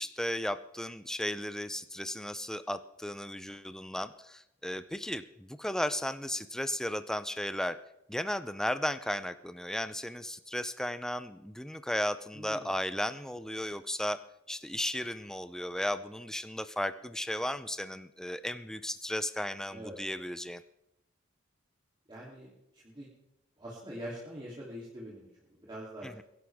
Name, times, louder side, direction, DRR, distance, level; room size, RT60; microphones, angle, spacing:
voice 1, 0.0-7.8 8.1-14.2 14.5-20.6 26.0-26.2, left 1 dB, 5° left, 12 dB, 0.5 m, -35 dB
voice 2, 12.3-12.7 19.7-20.0 22.1-23.1 23.6-26.1, equal, 25° right, -5 dB, 3.0 m, -44 dB
22.5 x 11.0 x 3.5 m, 0.86 s
head